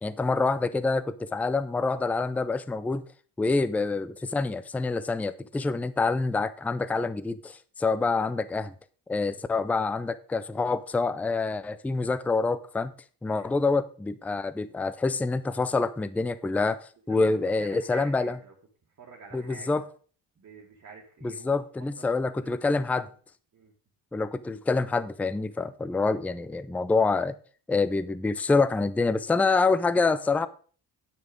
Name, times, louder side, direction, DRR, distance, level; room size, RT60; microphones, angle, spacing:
voice 1, 0.0-3.0 3.4-8.7 9.1-12.9 13.2-16.8 17.1-18.4 19.3-19.8 21.2-23.1 24.1-27.3 27.7-30.5, left 3 dB, 5° left, 0.4 m, -26 dB
voice 2, 17.6-18.5 19.0-19.8 20.4-22.5 23.5-23.7, right 5 dB, 40° right, 2.0 m, -48 dB
9.3 x 6.6 x 5.2 m
cardioid pair, 115°, 43 cm